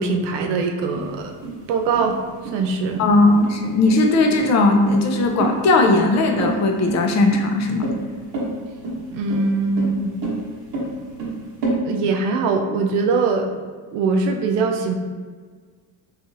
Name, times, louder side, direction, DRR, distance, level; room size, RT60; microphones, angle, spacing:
voice 1, 0.0-1.3 1.7-3.0 9.1-10.1 11.8-13.5 13.9-14.9, right 4 dB, 75° right, 5 dB, 0.5 m, -22 dB
sound 1, 0.9-11.8, right 2 dB, 55° right, 1.0 m, -28 dB
voice 2, 3.0-7.9, left 2 dB, 40° left, 3 dB, 0.4 m, -17 dB
2.8 x 2.4 x 2.6 m, 1.5 s
cardioid pair, 100°, 43 cm